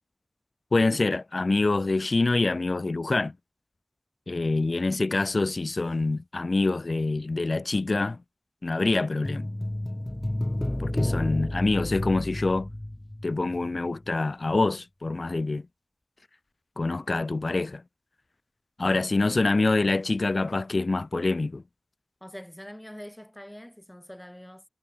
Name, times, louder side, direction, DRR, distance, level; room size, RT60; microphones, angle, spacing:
voice 1, 0.7-3.3 4.3-8.2 8.6-9.5 10.8-12.7 13.2-15.6 16.8-17.8 18.8-21.6, left 3 dB, 80° left, 0.3 m, -25 dB
sound 1, 9.2-13.7 14.0-14.1, left 1 dB, 30° left, 0.6 m, -30 dB
voice 2, 22.2-24.6, equal, 15° left, 2.1 m, -44 dB
wide cardioid pair, 40°, 0 cm